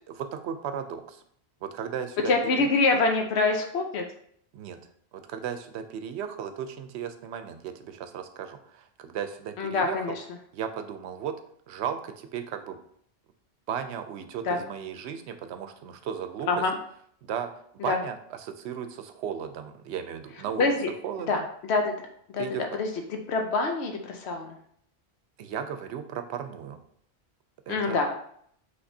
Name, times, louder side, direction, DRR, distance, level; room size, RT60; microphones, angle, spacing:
voice 1, 0.1-1.2 1.6-2.7 4.5-4.8 5.1-10.2 10.5-11.3 11.7-12.8 13.7-16.6 17.2-20.7 21.0-21.5 22.4-22.7 25.4-26.8 27.7-28.0, right 8 dB, 80° right, 8 dB, 0.8 m, -35 dB
voice 2, 2.3-4.0 9.6-10.2 14.4-14.6 16.5-16.7 17.9-18.0 20.6-20.7 21.3-21.9 22.3-22.4 22.8-24.6 27.7-28.1, left 3 dB, 80° left, 3 dB, 0.9 m, -25 dB
5.8 x 3.3 x 2.7 m, 0.66 s
omnidirectional pair, 1.1 m